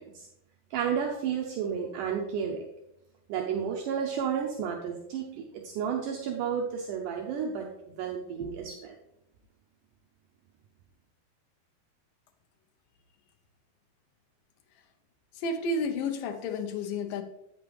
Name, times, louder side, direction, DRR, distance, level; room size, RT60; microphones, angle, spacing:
voice 1, 0.7-2.6 3.3-7.7 7.9-8.9, right 7 dB, 80° right, 0 dB, 2.1 m, -32 dB
voice 2, 15.3-17.2, left 2 dB, 80° left, 5 dB, 2.3 m, -31 dB
8.7 x 7.0 x 3.2 m, 0.85 s
omnidirectional pair, 4.2 m